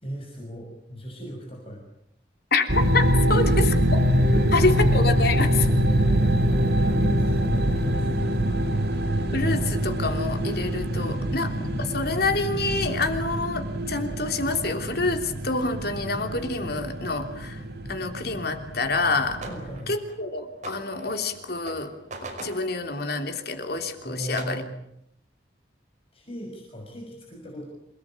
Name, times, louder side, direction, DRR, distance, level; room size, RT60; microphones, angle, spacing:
voice 1, 0.0-1.8 4.3-4.4 6.7-8.5 10.9-11.5 19.5-19.9 24.0-24.7 26.1-27.6, equal, 30° left, 0 dB, 6.3 m, -37 dB
sound 1, 2.7-19.8, equal, 60° right, 3.2 m, -24 dB
voice 2, 2.9-3.7 4.5-5.7 9.3-11.5 11.8-17.6 17.9-19.4 19.9-21.9 22.4-24.6, left 3 dB, 55° left, 6 dB, 3.2 m, -27 dB
sound 2, 19.4-24.6, right 2 dB, 40° right, 5.3 m, -43 dB
28.0 x 19.0 x 8.9 m, 0.75 s
head